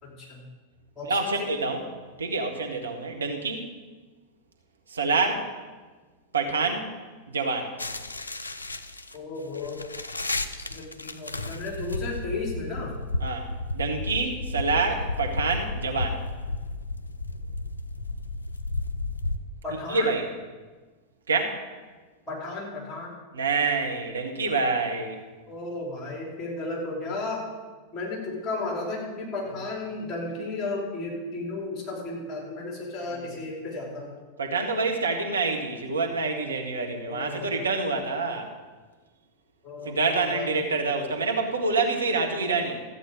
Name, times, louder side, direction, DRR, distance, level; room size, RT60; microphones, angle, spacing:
voice 1, 0.0-0.4 1.0-1.3 9.1-9.8 10.6-12.9 19.6-20.1 22.3-23.1 25.5-27.4 27.9-34.1 37.1-37.5 39.6-40.8, left 3 dB, 20° left, -2 dB, 4.2 m, -34 dB
voice 2, 1.1-1.9 2.2-3.7 4.9-5.5 6.3-6.9 7.3-7.7 13.2-13.5 13.7-16.2 19.9-20.2 21.3-21.6 23.3-25.2 33.1-33.2 34.4-38.5 39.8-42.8, right 3 dB, 70° right, 3 dB, 1.5 m, -27 dB
sound 1, 7.8-19.4, left 2 dB, 80° left, 0.6 m, -33 dB
14.0 x 8.4 x 5.3 m, 1.3 s
figure-of-eight pair, 90°, 0 cm